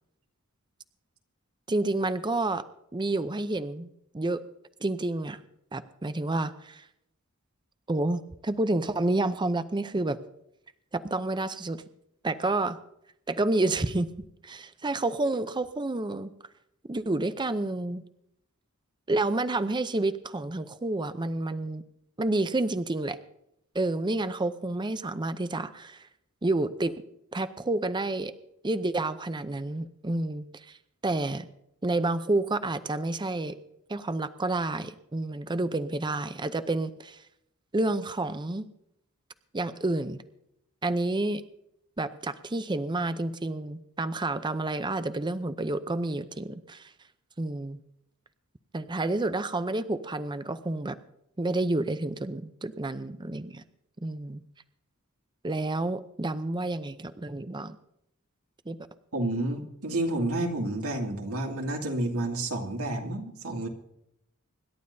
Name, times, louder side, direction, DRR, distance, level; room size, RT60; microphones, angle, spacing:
voice 1, 1.7-2.6 2.9-4.4 4.8-5.4 5.7-6.8 7.9-10.2 10.9-11.8 12.2-12.8 13.3-14.1 14.4-16.3 16.9-18.0 19.1-21.8 22.2-23.2 23.7-26.1 26.4-26.9 27.3-28.3 28.6-30.8 31.0-31.5 31.8-33.6 33.9-37.2 37.7-38.7 39.5-40.2 40.8-41.4 42.0-46.9 47.4-47.8 48.7-51.0 51.4-53.6 54.0-54.4 55.4-57.8 58.7-58.8, right 2 dB, 20° right, 12 dB, 0.6 m, -29 dB
voice 2, 59.1-63.7, right 1 dB, 75° right, 1 dB, 2.5 m, -30 dB
26.0 x 11.5 x 2.7 m, 0.78 s
head